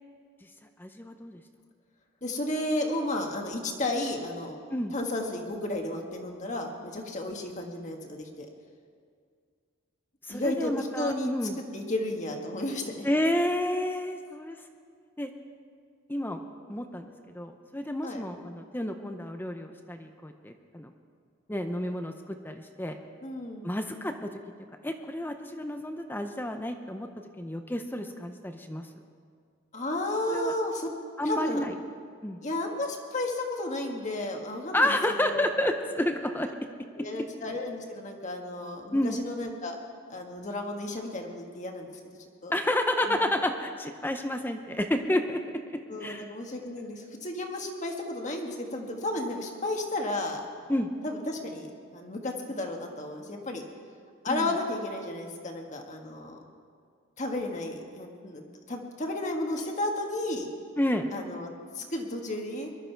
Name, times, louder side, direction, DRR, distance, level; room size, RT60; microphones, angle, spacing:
voice 1, 0.8-1.4 4.7-4.9 10.2-11.5 13.0-14.6 15.2-15.3 16.1-16.4 16.7-20.9 21.5-23.0 23.6-24.3 24.8-27.1 27.4-28.9 30.3-30.5 31.2-31.7 32.2-32.4 34.7-36.5 38.9-39.2 42.5-46.3 50.7-50.9 54.3-54.5 60.8-61.1, left 1 dB, 10° left, 6 dB, 0.6 m, -30 dB
voice 2, 2.2-4.6 4.9-8.5 10.3-11.3 11.7-13.1 18.0-18.2 23.2-23.7 29.7-30.9 31.2-31.7 32.4-35.6 37.0-39.8 40.1-42.0 42.4-42.5 43.1-43.2 45.9-50.5 51.0-53.6 54.2-56.4 57.2-58.4 58.7-60.5 61.1-61.5 61.7-62.7, left 1 dB, 35° left, 2 dB, 1.5 m, -33 dB
21.5 x 12.5 x 4.6 m, 2.1 s
head